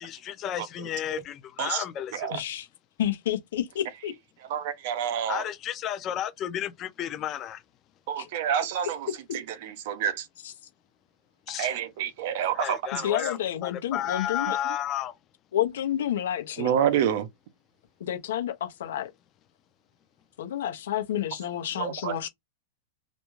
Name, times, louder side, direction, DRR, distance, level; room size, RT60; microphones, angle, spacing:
voice 1, 0.0-2.3 5.3-7.6 11.5-11.7 12.5-15.1, left 11 dB, 25° left, 0.5 m, -32 dB
voice 2, 0.6-1.2 1.6-1.8 2.1-2.4 4.5-5.4 8.1-9.1 9.3-10.3 11.5-12.8 16.6-17.3 21.8-22.3, right 9 dB, 50° right, 0.6 m, -28 dB
voice 3, 2.3-2.7 3.0-4.1 8.2-8.3 9.1-9.2 10.4-10.5 12.9-14.6 15.5-16.8 18.0-19.1 20.4-22.3, left 11 dB, 75° left, 0.7 m, -30 dB
2.5 x 2.3 x 3.1 m
supercardioid pair, 165°, 0 cm